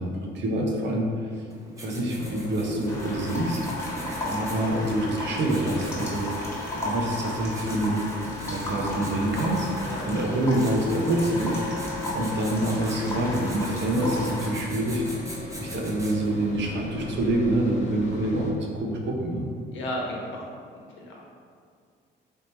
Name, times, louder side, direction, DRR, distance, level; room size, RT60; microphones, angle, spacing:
voice 1, 0.0-1.4 1.8-3.6 4.2-6.3 6.7-8.0 8.5-9.7 10.1-11.6 12.1-15.3 15.6-19.5, right 1 dB, 65° right, 0 dB, 0.8 m, -26 dB
Writing, 1.5-16.4, right 1 dB, 15° right, 0.8 m, -43 dB
sound 1, 2.1-18.5, left 2 dB, 40° left, 0.7 m, -39 dB
sound 2, 2.9-14.5, left 1 dB, 15° left, 1.1 m, -34 dB
voice 2, 19.7-20.5 21.0-21.2, left 1 dB, 75° left, -3 dB, 1.0 m, -33 dB
3.5 x 2.8 x 4.3 m, 2.2 s
cardioid pair, 90°, 20 cm